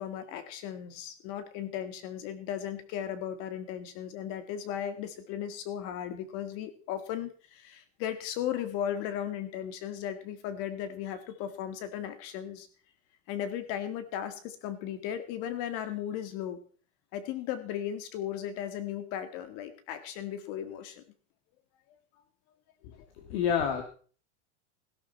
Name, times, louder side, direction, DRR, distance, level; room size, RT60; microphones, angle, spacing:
voice 1, 0.0-12.7 13.3-16.6 17.1-21.0, left 10 dB, 40° left, 11 dB, 1.8 m, -36 dB
voice 2, 22.8-23.8, left 7 dB, 55° left, 4 dB, 2.4 m, -29 dB
17.0 x 11.5 x 4.2 m, 0.42 s
supercardioid pair, 175°, 38 cm